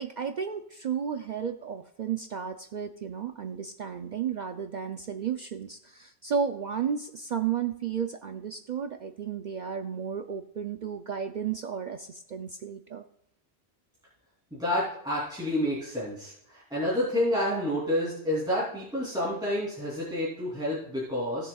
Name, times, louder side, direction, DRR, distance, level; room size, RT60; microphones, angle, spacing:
voice 1, 0.0-13.0, right 7 dB, 55° right, 6 dB, 0.6 m, -33 dB
voice 2, 14.5-21.5, left 1 dB, 5° right, -9 dB, 2.9 m, -29 dB
17.0 x 6.9 x 2.3 m, 0.72 s
omnidirectional pair, 1.1 m